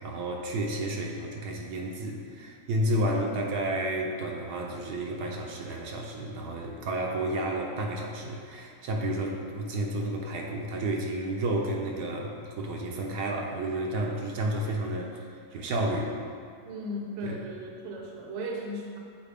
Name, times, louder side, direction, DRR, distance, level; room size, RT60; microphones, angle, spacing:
voice 1, 0.0-15.2 15.5-16.1 17.2-17.4, right 1 dB, 75° right, 0 dB, 1.2 m, -31 dB
voice 2, 16.7-19.0, equal, 55° right, 0 dB, 1.0 m, -36 dB
7.3 x 4.3 x 3.4 m, 2.4 s
omnidirectional pair, 1.8 m